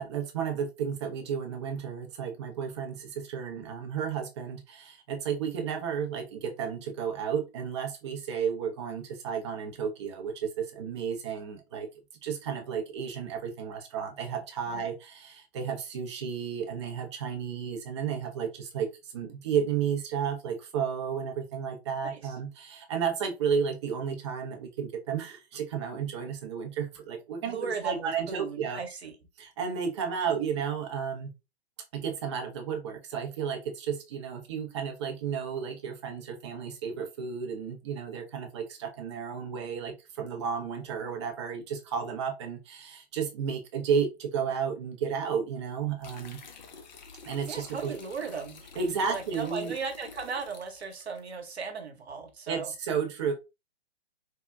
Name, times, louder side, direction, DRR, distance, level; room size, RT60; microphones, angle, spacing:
voice 1, 0.0-11.9 12.2-28.8 29.4-31.3 31.9-46.4 47.2-48.0 48.8-49.7 52.5-53.3, right 7 dB, 30° right, 0.5 m, -32 dB
voice 2, 22.0-22.3 27.5-29.1 47.5-48.6 49.0-52.7, right 5 dB, 80° right, 0.9 m, -37 dB
sound 1, 46.0-51.2, left 4 dB, 45° left, 0.5 m, -49 dB
3.5 x 2.1 x 2.2 m
figure-of-eight pair, 130°, 32 cm